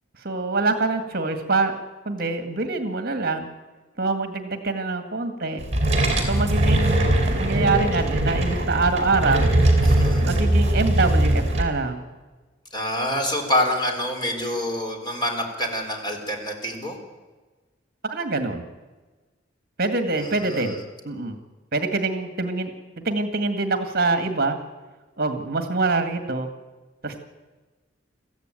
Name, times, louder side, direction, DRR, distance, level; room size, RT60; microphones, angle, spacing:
voice 1, 0.2-1.7 2.1-3.5 4.0-5.6 6.2-9.6 10.2-12.0 18.0-18.6 19.8-20.8 21.0-21.4 21.7-24.6 25.2-26.5 27.0-27.2, right 3 dB, 55° right, 7 dB, 1.9 m, -25 dB
sound 1, 5.6-11.6, right 1 dB, 35° right, 4.3 m, -20 dB
voice 2, 9.8-10.2 12.7-17.0 20.2-20.8, left 1 dB, 25° left, 3 dB, 3.8 m, -26 dB
23.0 x 15.0 x 9.1 m, 1.3 s
head